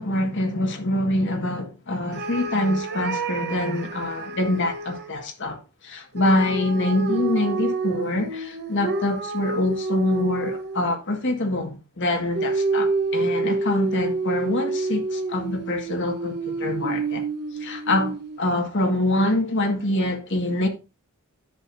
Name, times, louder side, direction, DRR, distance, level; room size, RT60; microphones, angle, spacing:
voice 1, 0.0-17.2 17.6-20.7, left 1 dB, 55° left, 1.8 m, -25 dB
sound 1, 2.1-5.1 6.1-10.9 12.3-18.4, right 3 dB, 50° right, 1.0 m, -28 dB
10.5 x 6.5 x 2.7 m
head